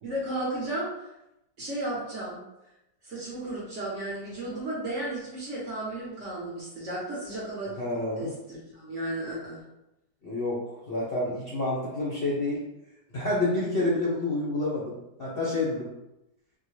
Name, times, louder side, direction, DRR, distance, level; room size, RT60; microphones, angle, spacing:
voice 1, 0.0-0.9 1.6-2.4 3.0-7.8 8.2-9.6, right 1 dB, 50° right, -6 dB, 1.0 m, -34 dB
voice 2, 7.8-8.3 10.2-10.6 10.9-12.6 13.1-15.9, left 2 dB, 50° left, -8 dB, 0.7 m, -28 dB
3.6 x 2.2 x 3.1 m, 0.89 s
omnidirectional pair, 1.9 m